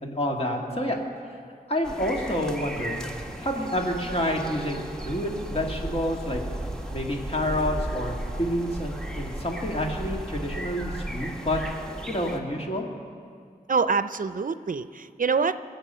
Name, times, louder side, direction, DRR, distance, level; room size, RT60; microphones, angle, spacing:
voice 1, 0.0-1.0 1.7-3.1 3.4-6.4 6.9-11.6 12.1-12.9, left 1 dB, 40° left, 0 dB, 2.2 m, -28 dB
sound 1, 1.8-12.4, right 1 dB, 5° left, 1.4 m, -35 dB
voice 2, 13.7-15.6, right 5 dB, 55° right, 13 dB, 0.6 m, -25 dB
23.5 x 7.9 x 5.7 m, 2.2 s
wide cardioid pair, 55°, 16 cm